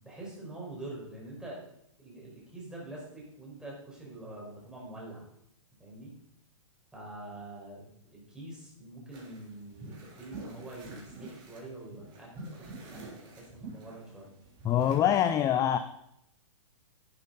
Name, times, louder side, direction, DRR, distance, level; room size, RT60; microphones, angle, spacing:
voice 1, 0.0-1.7 2.0-5.3 5.8-6.1 6.9-14.3, right 2 dB, 5° right, -5 dB, 5.0 m, -45 dB
sound 1, 9.1-15.0, right 3 dB, 30° right, 3.5 m, -47 dB
voice 2, 14.6-15.8, left 10 dB, 20° left, 11 dB, 0.5 m, -24 dB
11.0 x 10.5 x 4.1 m, 0.75 s
hypercardioid pair, 130°, 17 cm